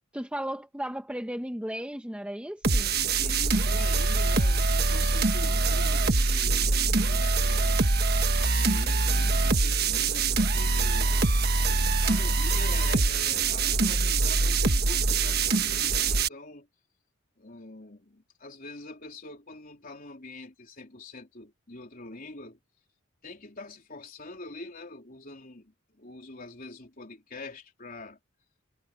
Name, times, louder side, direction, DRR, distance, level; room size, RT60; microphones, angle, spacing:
voice 1, 0.1-2.9, equal, 5° right, 1.0 m, -35 dB
sound 1, 2.6-16.3, right 3 dB, 50° right, 1.4 m, -24 dB
voice 2, 3.2-7.8 8.4-11.5 12.0-16.7 17.4-22.6 23.2-28.2, left 2 dB, 45° left, 3.5 m, -44 dB
head